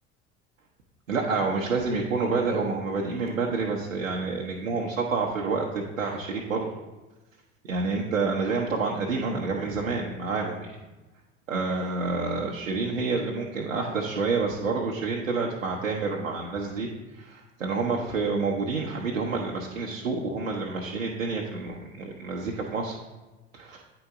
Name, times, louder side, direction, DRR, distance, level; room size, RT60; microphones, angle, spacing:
voice 1, 1.1-6.7 7.7-10.8 11.5-23.0 23.5-23.8, right 4 dB, 85° right, -2 dB, 0.9 m, -28 dB
8.7 x 3.9 x 4.7 m, 1.1 s
figure-of-eight pair, 70°, 38 cm